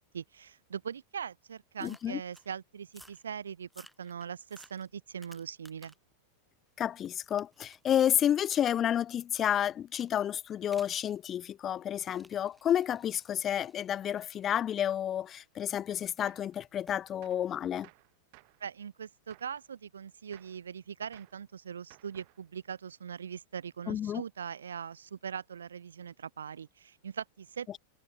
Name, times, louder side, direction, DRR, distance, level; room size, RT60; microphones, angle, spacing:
voice 1, 0.0-5.9 18.6-27.8, right 7 dB, 70° right, 2.3 m, -41 dB
voice 2, 1.8-2.2 6.8-17.9 23.9-24.2, left 10 dB, 25° left, 0.4 m, -30 dB
sound 1, 1.8-2.5 2.9-3.2 3.6-6.1 6.5-8.1 8.7-8.8 9.9-10.2 10.7-11.0 11.9-15.9 16.9-17.0, equal, ahead, 3.4 m, -58 dB
Gunshot gunfire, 16.2-16.5 17.2-17.5 17.8-18.6 19.3-19.6 20.3-20.6 21.1-21.4 21.9-22.4, right 36 dB, 45° right, 5.6 m, -59 dB
figure-of-eight pair, 90°, 0 cm